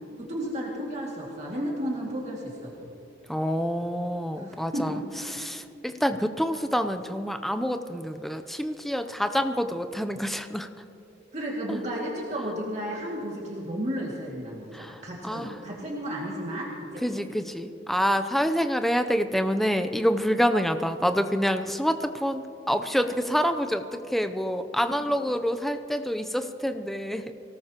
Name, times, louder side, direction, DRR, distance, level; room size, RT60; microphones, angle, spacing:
voice 1, 0.2-2.9 4.3-5.0 11.3-17.3, equal, 35° right, -4 dB, 2.2 m, -33 dB
voice 2, 3.3-4.9 5.3-10.7 14.7-15.6 17.0-27.3, equal, ahead, 8 dB, 0.5 m, -27 dB
24.5 x 18.0 x 2.9 m, 2.8 s
head